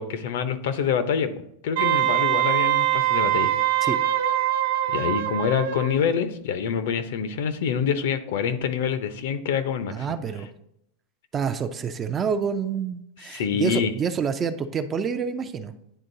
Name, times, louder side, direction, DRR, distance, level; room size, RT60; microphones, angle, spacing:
voice 1, 0.0-1.3 1.6-3.5 4.9-10.2 13.3-13.9, left 7 dB, 70° left, 10 dB, 0.7 m, -26 dB
Wind instrument woodwind instrument, 1.8-6.0, right 13 dB, 65° right, 0.7 m, -23 dB
voice 2, 9.9-10.5 11.3-15.7, right 6 dB, 20° right, 9 dB, 0.4 m, -28 dB
9.9 x 3.7 x 2.7 m, 0.77 s
supercardioid pair, 155°, 0 cm